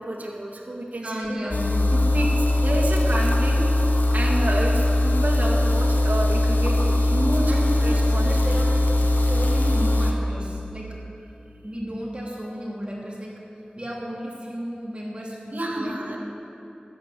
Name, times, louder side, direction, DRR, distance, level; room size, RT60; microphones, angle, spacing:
voice 1, 0.0-1.4 1.9-3.6 4.1-7.5 7.8-8.3 15.5-16.2, right 1 dB, 65° right, -4 dB, 2.2 m, -29 dB
voice 2, 1.0-1.8 7.5-8.8 9.2-10.9 11.6-13.3 13.7-15.9, equal, 35° right, -3 dB, 2.8 m, -33 dB
sound 1, 1.5-10.1, left 1 dB, 75° left, 1.1 m, -20 dB
13.0 x 9.1 x 6.9 m, 2.8 s
wide cardioid pair, 40°, 3 cm